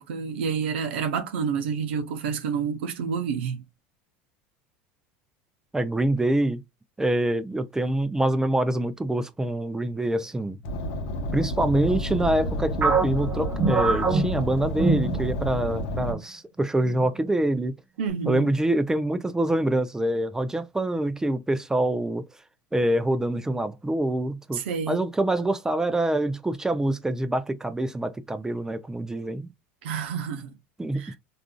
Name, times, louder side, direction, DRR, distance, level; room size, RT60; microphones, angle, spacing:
voice 1, 0.0-3.6 18.0-18.5 24.5-25.0 29.8-30.5 30.9-31.2, right 6 dB, 80° right, 0.6 m, -29 dB
voice 2, 5.7-6.6 7.0-10.6 11.3-17.8 18.3-22.3 22.7-24.6 24.9-29.5 30.8-31.0, right 1 dB, 10° right, 0.4 m, -25 dB
Car, 10.6-16.1, left 1 dB, 65° left, 0.7 m, -30 dB
sound 1, 12.8-15.7 16.0-16.2 16.8-17.3, right 4 dB, 35° right, 1.0 m, -25 dB
3.5 x 2.5 x 2.2 m
hypercardioid pair, 95°, 6 cm